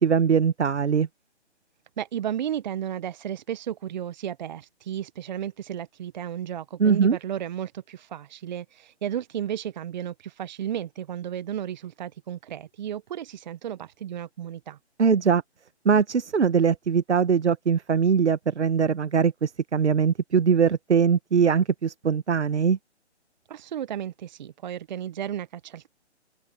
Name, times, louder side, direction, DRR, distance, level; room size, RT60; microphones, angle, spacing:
voice 1, 0.0-1.1 6.8-7.2 15.0-15.4 15.8-22.8, right 6 dB, 75° right, 1.3 m, -21 dB
voice 2, 2.0-14.8 23.5-25.9, right 10 dB, 40° right, 1.0 m, -33 dB
open air
figure-of-eight pair, 145°, 34 cm